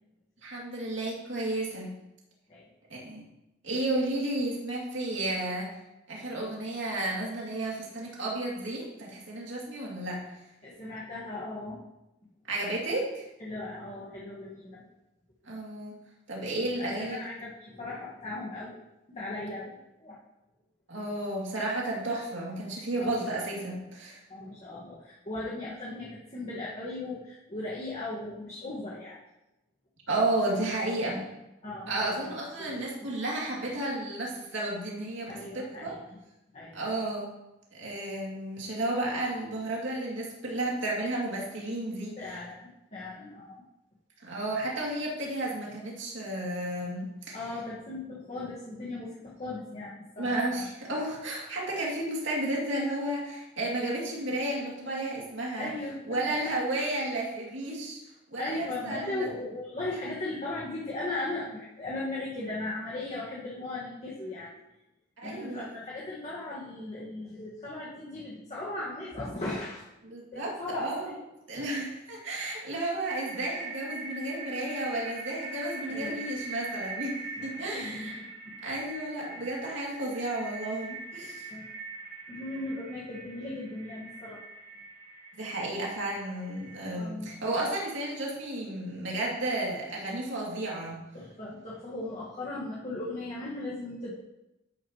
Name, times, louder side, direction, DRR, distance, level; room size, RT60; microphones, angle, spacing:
voice 1, 0.4-1.9 2.9-3.2 3.6-5.7 6.1-10.2 12.5-13.3 15.4-16.0 16.3-17.2 20.9-24.2 30.1-31.3 31.9-35.9 36.7-37.3 37.7-42.2 44.2-47.4 50.2-55.7 56.1-58.0 58.3-59.3 65.2-65.7 70.0-71.1 71.5-77.2 77.4-78.2 78.6-81.5 85.4-91.0, right 1 dB, 65° right, -3 dB, 2.6 m, -32 dB
voice 2, 10.6-11.8 13.4-14.9 16.6-18.8 19.1-20.2 23.0-23.3 24.3-29.2 31.6-32.3 32.6-33.1 35.3-36.0 36.5-36.9 42.2-43.6 47.3-50.7 55.6-56.2 56.4-56.6 58.4-64.5 65.2-69.9 70.3-71.2 71.5-71.7 75.9-76.1 77.4-78.3 81.5-81.7 82.3-84.4 86.9-87.3 91.1-94.1, left 2 dB, 35° left, -6 dB, 1.6 m, -38 dB
sound 1, 72.6-86.9, right 3 dB, 45° right, 2.0 m, -42 dB
11.5 x 8.7 x 3.0 m, 0.93 s
head